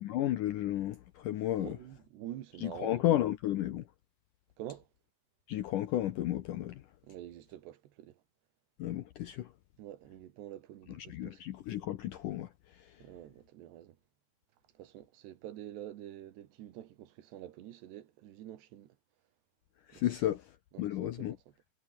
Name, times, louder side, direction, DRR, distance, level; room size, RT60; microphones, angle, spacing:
voice 1, 0.0-1.8 2.6-3.8 5.5-6.8 8.8-9.5 11.0-12.5 19.9-20.4 20.8-21.4, left 13 dB, 70° left, 2.0 m, -32 dB
voice 2, 1.6-3.0 4.6-4.9 7.0-8.2 9.8-11.4 13.0-14.0 14.8-19.0 19.9-20.3 20.7-21.4, right 12 dB, 80° right, 3.8 m, -47 dB
omnidirectional pair, 4.9 m